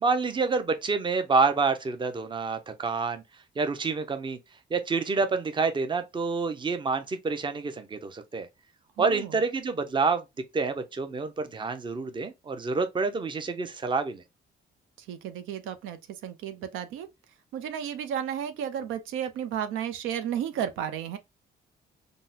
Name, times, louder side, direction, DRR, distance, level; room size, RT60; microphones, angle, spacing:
voice 1, 0.0-3.2 3.6-4.4 4.7-8.5 9.0-10.2 10.5-14.2, right 4 dB, 25° right, 0.5 m, -27 dB
voice 2, 9.0-9.3 15.0-17.1 17.5-21.2, right 9 dB, 90° right, 0.5 m, -33 dB
3.7 x 2.0 x 2.7 m
cardioid pair, 90°, 20 cm